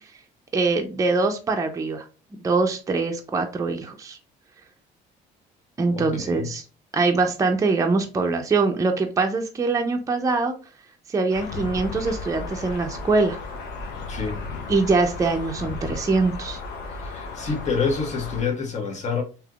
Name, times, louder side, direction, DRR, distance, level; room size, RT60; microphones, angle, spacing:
voice 1, 0.5-2.0 2.4-4.2 5.8-6.6 6.9-10.5 11.1-13.4 14.7-16.6, right 3 dB, 20° right, 0.5 m, -23 dB
voice 2, 5.9-6.5 14.1-14.4 17.0-19.2, left 5 dB, 45° left, 1.1 m, -27 dB
sound 1, 11.3-18.4, left 3 dB, 85° left, 0.8 m, -34 dB
3.3 x 2.9 x 2.3 m
cardioid pair, 110°, 17 cm